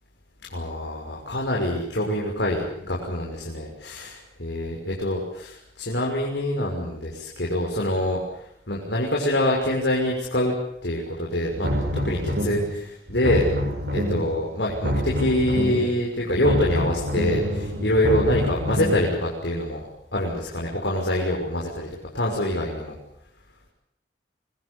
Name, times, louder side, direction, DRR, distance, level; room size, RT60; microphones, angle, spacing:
voice 1, 0.5-10.5 10.8-13.5 13.9-19.8 20.1-21.9 22.1-22.9, left 1 dB, 75° left, -2 dB, 6.4 m, -25 dB
sound 1, 11.5-12.8 13.1-14.4 14.7-16.0 16.3-19.1, equal, 65° right, 6.4 m, -26 dB
26.0 x 22.0 x 8.4 m, 0.72 s
head